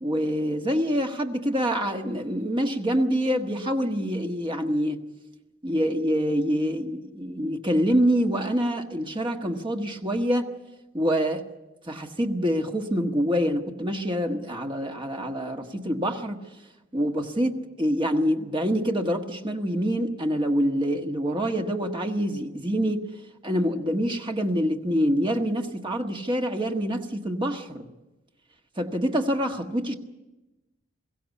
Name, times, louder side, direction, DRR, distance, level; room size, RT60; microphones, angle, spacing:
voice 1, 0.0-5.0 5.6-10.5 10.9-11.4 11.9-16.4 16.9-23.0 23.4-27.9 28.8-29.9, equal, 25° right, 3 dB, 1.4 m, -26 dB
22.0 x 16.0 x 8.3 m, 1.0 s
head